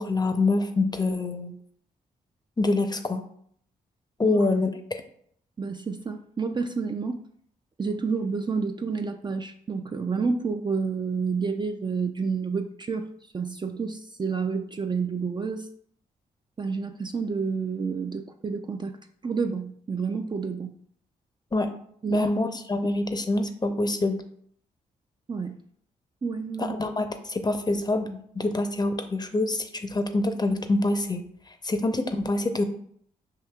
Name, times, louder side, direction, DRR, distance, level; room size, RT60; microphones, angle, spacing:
voice 1, 0.0-1.5 2.6-3.2 4.2-5.0 21.5-21.7 22.1-24.2 26.6-32.6, left 2 dB, 25° left, 7 dB, 0.6 m, -26 dB
voice 2, 5.6-7.2 7.8-13.1 13.3-15.7 16.6-19.0 19.2-20.7 22.0-22.3 25.3-25.6 26.2-26.7, right 5 dB, 25° right, 6 dB, 0.4 m, -29 dB
5.7 x 2.8 x 2.3 m, 0.63 s
supercardioid pair, 50°, 17 cm